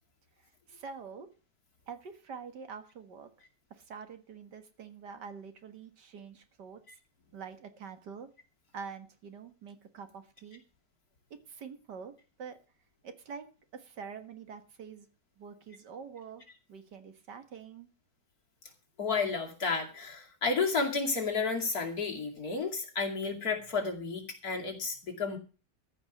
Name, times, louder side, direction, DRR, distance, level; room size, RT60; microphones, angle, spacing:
voice 1, 0.7-1.3 1.9-3.3 3.7-6.8 7.3-8.3 8.7-10.6 11.5-12.1 12.4-12.6 13.0-13.5 13.7-15.1 15.4-16.4 16.7-17.9, right 6 dB, 75° right, 9 dB, 2.2 m, -45 dB
voice 2, 19.0-25.4, left 4 dB, 55° left, 1 dB, 3.0 m, -32 dB
14.5 x 5.5 x 9.1 m, 0.35 s
omnidirectional pair, 1.9 m